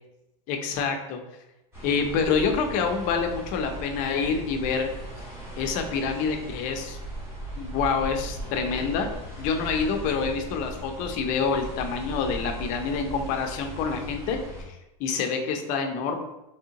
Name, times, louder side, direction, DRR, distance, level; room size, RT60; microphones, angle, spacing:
voice 1, 0.5-1.2 1.8-4.9 5.6-7.0 7.6-9.1 9.4-14.4 14.7-16.2, left 5 dB, 45° left, 4 dB, 0.5 m, -27 dB
sound 1, 1.7-14.6, right 1 dB, 15° right, 1.3 m, -38 dB
3.6 x 3.3 x 2.8 m, 0.94 s
supercardioid pair, 150°, 19 cm